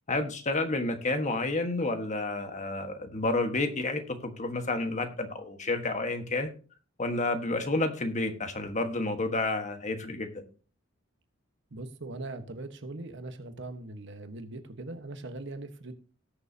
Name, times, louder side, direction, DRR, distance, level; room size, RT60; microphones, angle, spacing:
voice 1, 0.1-6.5 7.0-10.4, left 2 dB, 35° left, 6 dB, 1.4 m, -30 dB
voice 2, 11.7-15.9, right 2 dB, 65° right, 8 dB, 1.2 m, -40 dB
19.0 x 6.6 x 2.8 m, 0.38 s
head